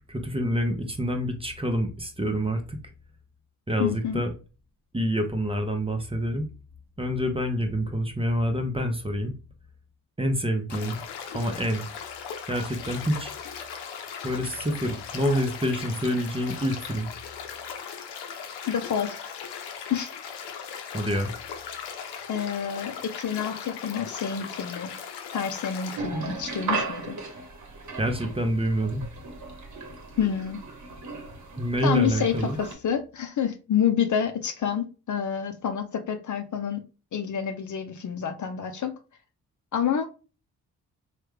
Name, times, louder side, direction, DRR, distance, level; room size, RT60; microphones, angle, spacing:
voice 1, 0.1-2.8 3.7-4.3 4.9-6.5 7.0-9.3 10.2-11.0 11.3-11.8 12.5-13.3 14.2-17.1 20.9-21.3 28.0-29.1 31.6-32.6, equal, 15° right, 0.8 m, -27 dB
voice 2, 3.8-4.2 18.7-19.2 19.9-20.1 22.3-24.9 25.3-27.2 30.2-30.6 31.8-36.8 37.1-39.0 39.7-40.1, left 8 dB, 45° left, 0.6 m, -28 dB
sound 1, 10.7-26.0, left 7 dB, 80° left, 0.7 m, -38 dB
sound 2, 26.0-32.7, right 4 dB, 45° right, 1.1 m, -36 dB
3.1 x 2.4 x 3.3 m
hypercardioid pair, 45°, 41 cm